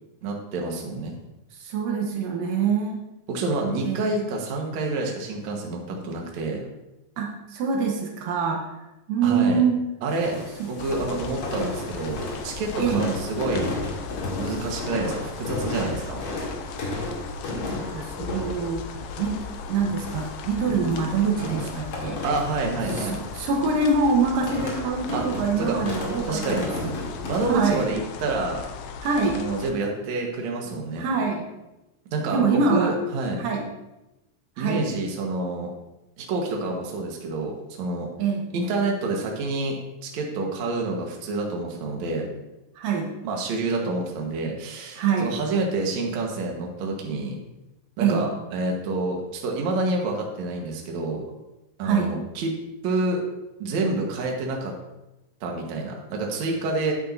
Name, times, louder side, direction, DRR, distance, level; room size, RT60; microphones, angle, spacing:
voice 1, 0.2-1.1 3.3-6.6 9.2-9.6 10.0-10.3 10.7-13.8 14.4-16.2 22.2-23.2 25.1-25.2 25.6-25.8 26.2-26.7 27.3-28.6 29.3-31.0 32.1-33.4 34.6-35.7 36.2-38.1 38.5-39.8 40.0-42.3 43.2-47.4 48.0-51.2 51.8-52.5 52.8-53.2 53.6-54.7 55.4-56.9, right 3 dB, 60° right, 0 dB, 2.4 m, -28 dB
voice 2, 1.5-3.0 3.8-4.2 7.2-8.7 9.1-9.8 10.6-10.7 12.8-13.1 17.7-19.4 19.7-22.2 23.0-26.9 27.5-27.9 29.0-29.4 31.0-31.5 32.3-33.0 33.4-33.6 34.6-34.9 38.2-38.4 42.8-43.1 45.0-45.3 48.0-48.2 51.8-52.1, right 5 dB, 80° right, 0 dB, 2.8 m, -25 dB
sound 1, 10.1-27.8, left 2 dB, 45° left, 2.5 m, -34 dB
sound 2, 10.8-29.7, left 5 dB, 75° left, 1.8 m, -38 dB
12.5 x 8.9 x 2.7 m, 0.96 s
omnidirectional pair, 4.0 m